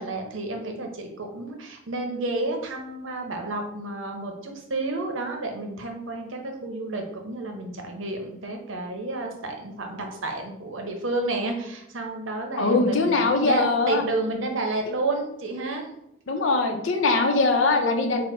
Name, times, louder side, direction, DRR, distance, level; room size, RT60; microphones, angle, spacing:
voice 1, 0.0-15.9, right 2 dB, 90° right, 3 dB, 0.8 m, -31 dB
voice 2, 12.6-14.0 16.3-18.2, left 3 dB, 85° left, 4 dB, 0.6 m, -22 dB
4.2 x 2.1 x 4.2 m, 0.81 s
head